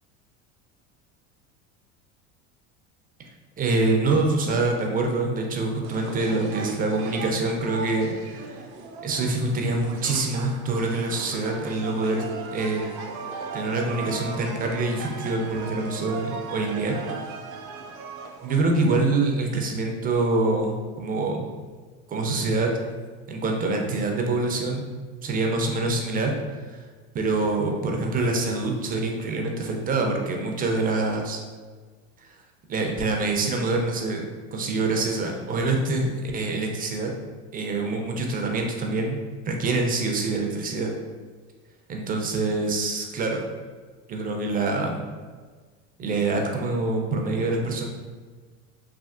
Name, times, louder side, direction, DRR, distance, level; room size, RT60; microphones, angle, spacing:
voice 1, 3.6-8.6 9.0-12.2 12.5-12.8 13.5-17.0 18.4-21.5 22.1-22.7 23.3-24.8 25.2-26.3 26.7-26.8 27.1-31.4 32.7-37.1 37.5-39.2 39.5-40.9 41.9-43.4 44.1-45.0 46.0-47.9, right 3 dB, 25° right, 2 dB, 0.3 m, -25 dB
sound 1, 5.8-18.6, right 4 dB, 85° right, 0.5 m, -38 dB
3.3 x 2.3 x 2.4 m, 1.5 s
supercardioid pair, 95°, 41 cm